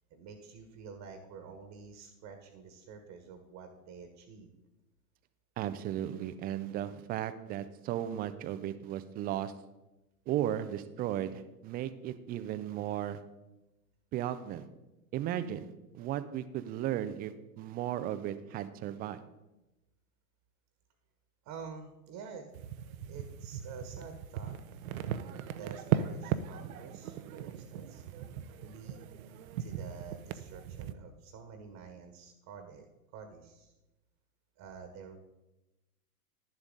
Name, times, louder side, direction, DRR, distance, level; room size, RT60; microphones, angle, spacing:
voice 1, 0.1-4.5 21.4-22.5 23.0-24.6 25.5-28.0 28.6-29.1 29.6-33.7 34.6-35.2, right 5 dB, 40° right, 6 dB, 1.4 m, -48 dB
voice 2, 5.6-9.5 10.3-13.2 14.1-14.7 15.1-15.7 15.9-19.2, right 11 dB, 20° right, 13 dB, 0.4 m, -35 dB
sound 1, 22.5-30.9, right 10 dB, 65° right, 0.7 m, -38 dB
11.0 x 7.3 x 3.8 m, 1.0 s
hypercardioid pair, 105°, 46 cm